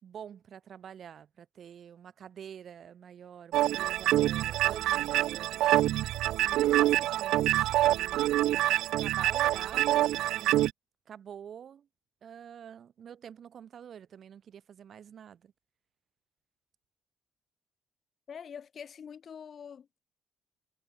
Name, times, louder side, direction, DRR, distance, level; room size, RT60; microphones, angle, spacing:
voice 1, 0.0-5.6 6.4-8.4 9.0-10.7 11.1-11.9 12.2-15.5, right 8 dB, 50° right, 3.8 m, -47 dB
sound 1, 3.5-10.7, right 15 dB, 90° right, 0.7 m, -26 dB
voice 2, 18.3-20.0, left 7 dB, 45° left, 6.7 m, -45 dB
cardioid pair, 135°, 0 cm